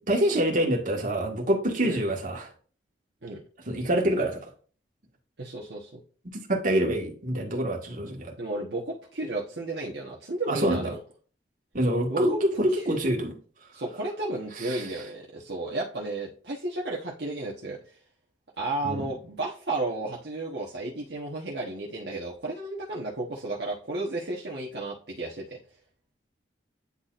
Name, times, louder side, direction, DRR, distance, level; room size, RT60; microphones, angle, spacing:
voice 1, 0.1-2.5 3.7-4.5 6.5-8.3 10.5-10.9 11.7-13.3 14.6-14.9 18.8-19.1, right 1 dB, 45° right, 0 dB, 1.7 m, -26 dB
voice 2, 5.4-5.9 8.4-11.0 12.1-12.4 13.7-17.8 18.6-25.6, right 2 dB, 65° right, -3 dB, 1.2 m, -33 dB
9.7 x 4.2 x 2.5 m, 0.41 s
head